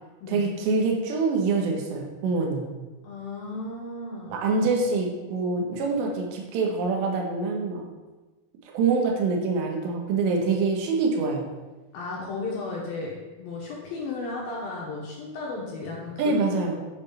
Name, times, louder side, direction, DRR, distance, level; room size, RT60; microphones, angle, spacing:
voice 1, 0.3-2.7 4.3-7.8 8.7-11.4 16.2-16.8, right 4 dB, 70° right, 0 dB, 3.3 m, -25 dB
voice 2, 3.0-4.4 11.9-16.4, left 3 dB, 70° left, -3 dB, 2.4 m, -34 dB
11.0 x 4.5 x 5.6 m, 1.2 s
omnidirectional pair, 5.6 m